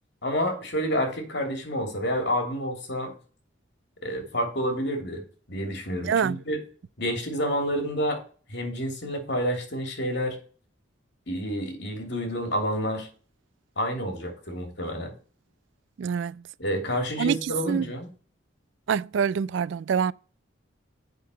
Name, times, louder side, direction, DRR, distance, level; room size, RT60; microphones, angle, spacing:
voice 1, 0.2-3.1 4.0-5.2 5.5-6.6 7.0-8.2 8.5-10.4 11.3-13.1 13.8-15.1 16.6-18.1, equal, 60° left, 2.9 m, -29 dB
voice 2, 6.0-6.4 16.0-16.4 17.2-17.9 18.9-20.1, right 7 dB, 70° right, 0.3 m, -26 dB
8.4 x 5.7 x 5.5 m
head